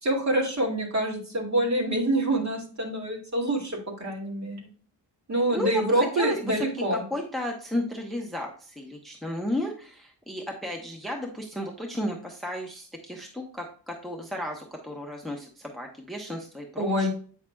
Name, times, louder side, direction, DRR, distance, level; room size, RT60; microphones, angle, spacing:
voice 1, 0.0-4.7 5.3-7.0 16.8-17.1, right 1 dB, 40° right, -1 dB, 2.3 m, -26 dB
voice 2, 5.5-17.1, left 1 dB, ahead, 1 dB, 0.8 m, -34 dB
8.6 x 5.6 x 2.3 m, 0.43 s
wide cardioid pair, 160°, 41 cm